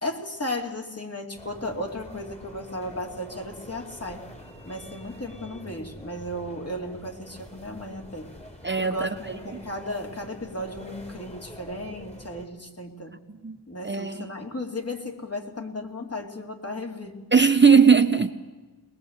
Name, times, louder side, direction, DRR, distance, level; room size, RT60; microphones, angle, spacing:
voice 1, 0.0-4.2 4.7-8.3 8.8-13.1 13.7-17.2, left 1 dB, 35° left, 2 dB, 2.7 m, -35 dB
sound 1, 1.4-12.5, equal, 15° left, 2.5 m, -46 dB
voice 2, 8.6-9.4 13.3-13.6 13.8-14.3 17.3-18.3, right 6 dB, 25° right, 9 dB, 0.7 m, -19 dB
21.5 x 20.5 x 7.9 m, 1.3 s
wide cardioid pair, 75°, 41 cm